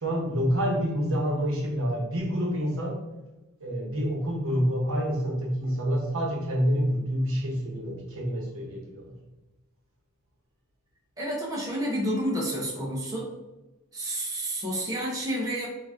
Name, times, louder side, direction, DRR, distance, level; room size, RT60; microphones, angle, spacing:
voice 1, 0.0-3.0 3.6-9.1, equal, 65° right, -2 dB, 1.0 m, -27 dB
voice 2, 11.2-13.3 13.9-15.7, equal, 15° right, -5 dB, 0.8 m, -30 dB
3.8 x 2.6 x 3.6 m, 1.0 s
head